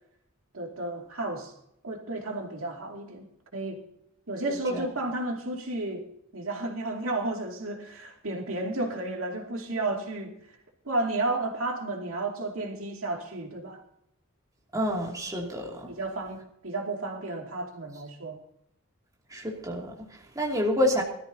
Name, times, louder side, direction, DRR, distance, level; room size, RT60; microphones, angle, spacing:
voice 1, 0.5-1.5 1.8-3.3 3.5-3.8 4.3-6.1 6.3-10.3 10.8-13.8 15.9-18.4, right 2 dB, 75° right, 2 dB, 2.5 m, -32 dB
voice 2, 4.5-4.8 14.7-15.9 19.3-21.0, equal, 15° right, -1 dB, 2.6 m, -29 dB
22.0 x 13.5 x 2.8 m, 0.76 s
head